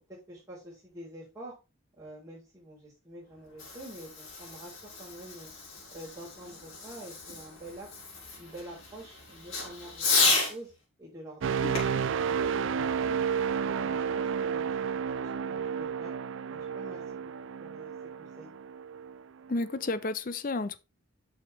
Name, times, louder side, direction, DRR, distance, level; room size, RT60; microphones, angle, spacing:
voice 1, 0.1-1.5 2.0-5.5 5.9-7.9 8.4-10.7 11.0-13.2 13.6-14.8 15.2-16.1 16.5-17.3 17.6-18.5, right 1 dB, 10° right, 4.5 m, -47 dB
Fireworks, 3.3-10.6 11.7-13.4, left 3 dB, 80° left, 4.3 m, -33 dB
sound 1, 11.4-19.2 19.7-19.9, right 7 dB, 65° right, 0.4 m, -31 dB
voice 2, 19.5-20.8, left 3 dB, 40° left, 0.5 m, -31 dB
8.2 x 6.5 x 3.4 m
head